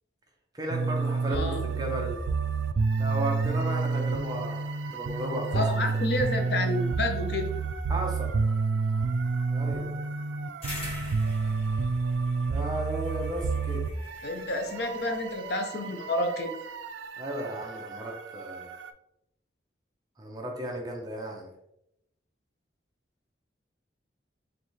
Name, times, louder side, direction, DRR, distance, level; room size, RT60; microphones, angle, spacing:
voice 1, 0.5-2.2 3.0-5.8 7.9-8.3 9.5-9.9 12.5-13.9 17.2-18.7 20.2-21.5, right 1 dB, 20° right, 1 dB, 0.6 m, -34 dB
sound 1, 0.7-18.9, right 4 dB, 85° right, 0.4 m, -30 dB
voice 2, 1.3-1.6 5.5-7.6 14.2-16.5, left 2 dB, 60° left, 4 dB, 0.6 m, -30 dB
sound 2, 10.6-15.5, equal, 30° left, 1.4 m, -43 dB
3.9 x 3.2 x 3.1 m, 0.84 s
head